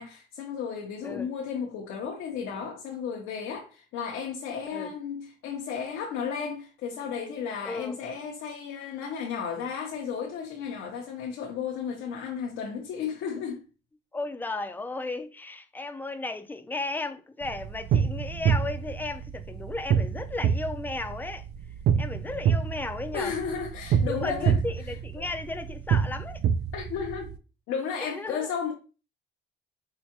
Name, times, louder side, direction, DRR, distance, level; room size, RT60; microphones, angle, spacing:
voice 1, 0.0-13.6 23.1-24.6 26.7-27.3 27.7-28.7, left 6 dB, 90° left, 0.7 m, -33 dB
voice 2, 7.6-8.0 14.1-21.4 22.0-23.3 24.1-26.4 28.0-28.5, left 3 dB, 10° left, 0.4 m, -35 dB
sound 1, 17.4-27.4, right 7 dB, 60° right, 0.4 m, -27 dB
4.6 x 2.2 x 2.8 m
cardioid pair, 90°, 20 cm